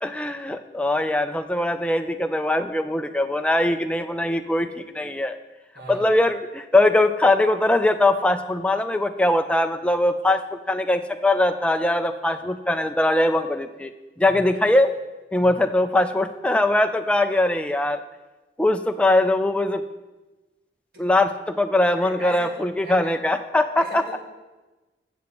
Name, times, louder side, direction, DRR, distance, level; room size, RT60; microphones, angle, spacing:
voice 1, 0.0-5.4 5.9-13.9 14.2-14.9 15.3-18.0 18.6-19.8 21.0-24.2, left 1 dB, 5° left, 7 dB, 0.4 m, -21 dB
voice 2, 5.7-6.1 14.2-14.4 15.4-15.6 20.9-21.1 22.0-23.2 23.7-24.2, right 1 dB, 60° right, -2 dB, 2.0 m, -39 dB
15.0 x 7.1 x 3.0 m, 1.2 s
head